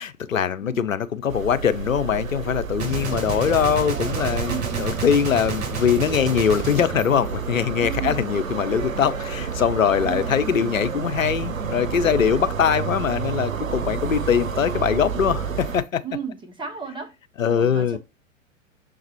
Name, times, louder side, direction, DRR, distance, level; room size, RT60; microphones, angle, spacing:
voice 1, 0.0-16.0 17.4-18.0, left 8 dB, 75° left, 0.8 m, -22 dB
sound 1, 1.3-15.8, right 6 dB, 85° right, 0.7 m, -30 dB
Gunshot gunfire, 2.8-8.0, right 6 dB, 35° right, 2.7 m, -30 dB
voice 2, 3.0-3.5 4.5-4.9 7.8-8.2 9.9-10.4 16.0-17.1 17.5-18.0, right 6 dB, 10° right, 1.5 m, -34 dB
6.9 x 4.0 x 4.4 m
figure-of-eight pair, 95°, 40 cm